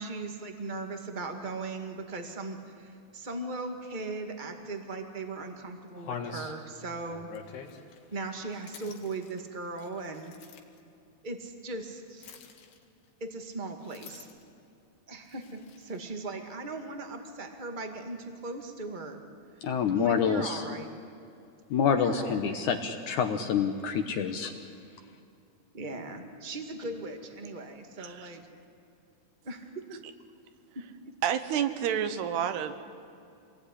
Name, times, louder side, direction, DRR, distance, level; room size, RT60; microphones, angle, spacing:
voice 1, 0.0-7.3 8.1-10.3 11.2-12.3 13.2-14.3 15.1-19.2 19.9-20.9 22.0-22.7 25.7-28.4 29.4-30.0 30.7-31.1, right 3 dB, 25° right, 5 dB, 1.1 m, -38 dB
sound 1, 4.8-4.9 5.4-5.5 5.9-10.8 12.2-13.1 13.8-14.6 15.3-16.1, left 6 dB, 85° left, 4.0 m, -45 dB
voice 2, 19.6-20.7 21.7-24.5, left 7 dB, 65° left, 7 dB, 2.1 m, -27 dB
voice 3, 28.0-28.4 31.2-32.8, right 9 dB, 85° right, 10 dB, 3.3 m, -29 dB
27.0 x 19.5 x 10.0 m, 2.6 s
omnidirectional pair, 4.6 m